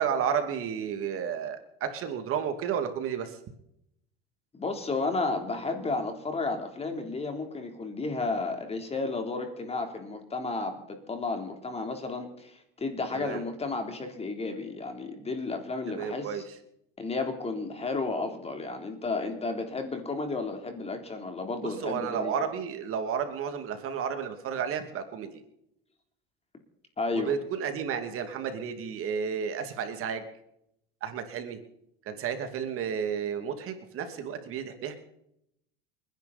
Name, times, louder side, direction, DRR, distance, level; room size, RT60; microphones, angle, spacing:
voice 1, 0.0-3.4 13.1-13.4 15.9-16.4 21.6-25.4 27.1-30.2 31.0-31.6 32.1-35.0, right 7 dB, 45° right, 7 dB, 2.6 m, -32 dB
voice 2, 4.6-16.4 17.0-22.5 27.0-27.3, left 3 dB, 20° left, 5 dB, 3.6 m, -32 dB
28.5 x 10.5 x 4.2 m, 0.76 s
supercardioid pair, 115°, 30 cm